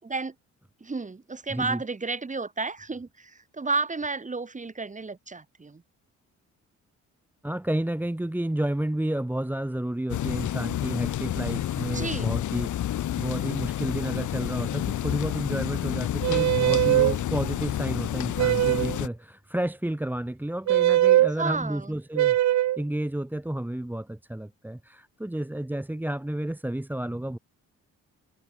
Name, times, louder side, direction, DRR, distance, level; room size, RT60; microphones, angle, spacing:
voice 1, 0.0-0.4 0.8-5.8 11.9-12.3 21.4-21.9, right 3 dB, 25° right, 5.3 m, -32 dB
voice 2, 7.4-27.4, right 1 dB, 5° right, 1.7 m, -31 dB
sound 1, 10.1-19.1, left 12 dB, 75° left, 5.0 m, -29 dB
sound 2, 16.2-17.2 18.4-19.0 20.7-21.3 22.2-22.8, right 13 dB, 65° right, 0.8 m, -21 dB
cardioid pair, 90°, 30 cm